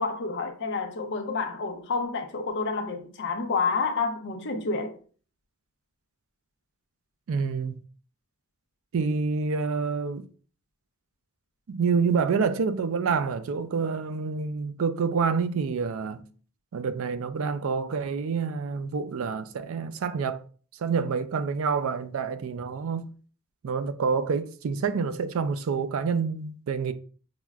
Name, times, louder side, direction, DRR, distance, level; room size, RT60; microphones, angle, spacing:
voice 1, 0.0-5.0, left 4 dB, 55° left, 0.6 m, -29 dB
voice 2, 7.3-7.8 8.9-10.3 11.7-16.3 16.7-20.4 20.8-23.1 23.6-26.9, right 5 dB, 65° right, 0.4 m, -27 dB
5.9 x 2.1 x 2.3 m
head